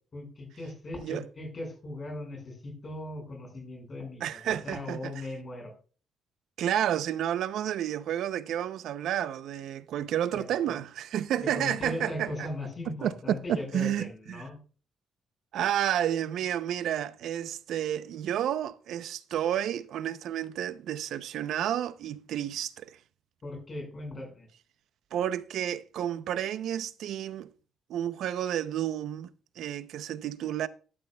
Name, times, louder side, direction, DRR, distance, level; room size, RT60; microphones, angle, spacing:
voice 1, 0.1-5.7 10.3-10.8 11.5-14.6 23.4-24.5, left 1 dB, 30° left, 5.3 m, -38 dB
voice 2, 1.0-1.3 4.2-5.1 6.6-12.5 13.0-14.4 15.5-23.0 25.1-27.5 27.9-29.3 29.6-30.7, right 10 dB, 70° right, 0.6 m, -31 dB
12.0 x 12.0 x 2.3 m
cardioid pair, 145°, 0 cm